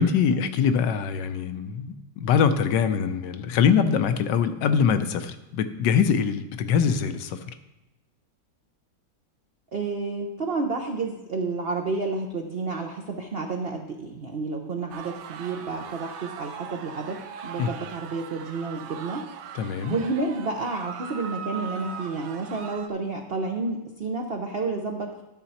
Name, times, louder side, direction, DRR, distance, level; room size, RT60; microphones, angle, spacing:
voice 1, 0.0-7.4 17.6-17.7 19.5-20.0, left 7 dB, 70° left, 10 dB, 1.3 m, -23 dB
voice 2, 9.7-19.2 19.9-25.1, right 3 dB, 55° right, 2 dB, 0.6 m, -30 dB
sound 1, 14.9-22.9, right 7 dB, 90° right, 1.6 m, -40 dB
12.5 x 6.8 x 4.2 m, 1.0 s
omnidirectional pair, 2.2 m